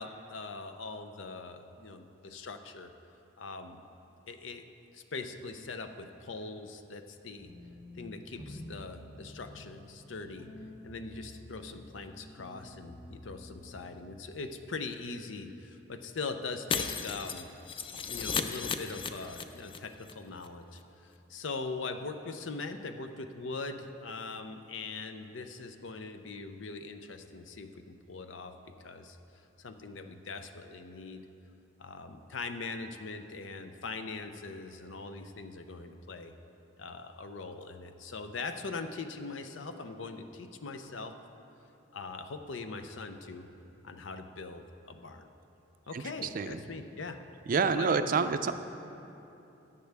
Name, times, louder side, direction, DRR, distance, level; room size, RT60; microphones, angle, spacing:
voice 1, 0.0-2.9 3.4-3.8 4.3-4.6 4.9-7.5 7.9-10.5 10.8-17.5 18.0-28.5 28.8-29.2 29.6-31.2 31.8-36.3 36.8-41.1 41.9-43.5 43.8-45.3 45.9-47.2 47.6-48.1, left 3 dB, 80° left, 8 dB, 0.6 m, -41 dB
sound 1, 7.4-13.9, left 1 dB, 50° left, 1.8 m, -49 dB
Shatter, 16.7-19.8 20.0-20.1 20.4-20.5, left 5 dB, 30° left, 0.4 m, -35 dB
voice 2, 47.5-48.5, right 5 dB, 45° right, 10 dB, 0.4 m, -27 dB
14.5 x 9.2 x 3.4 m, 2.9 s
head